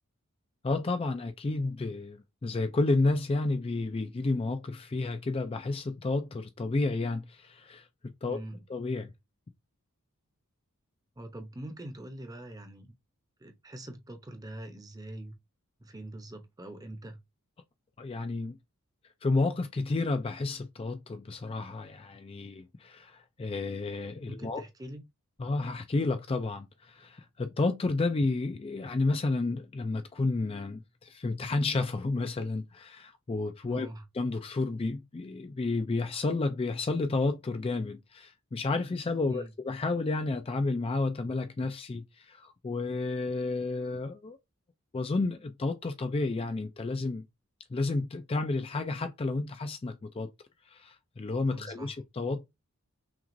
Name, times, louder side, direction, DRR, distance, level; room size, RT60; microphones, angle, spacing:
voice 1, 0.6-8.4 8.7-9.1 18.0-18.6 19.2-24.6 25.4-33.9 34.1-44.4 44.9-47.2 47.7-50.3 50.7-52.5, left 3 dB, 25° left, 0.3 m, -31 dB
voice 2, 8.3-8.6 11.2-12.9 13.4-15.3 15.8-17.2 24.3-25.0 33.6-34.0 39.3-39.5 51.5-51.9, right 1 dB, 15° right, 0.7 m, -43 dB
5.8 x 2.4 x 2.6 m
head